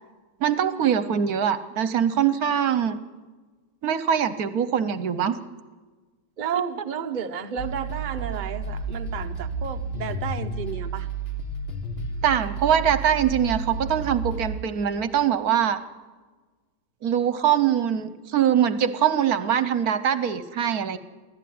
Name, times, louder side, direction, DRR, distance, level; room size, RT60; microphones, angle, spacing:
voice 1, 0.4-3.0 3.8-5.4 6.5-6.6 12.2-15.8 17.0-21.0, right 9 dB, 65° right, 1.3 m, -23 dB
voice 2, 6.4-11.1, right 7 dB, 35° right, 0.9 m, -32 dB
sound 1, 7.6-14.6, right 3 dB, 35° left, 2.1 m, -31 dB
24.0 x 15.0 x 9.4 m
omnidirectional pair, 1.8 m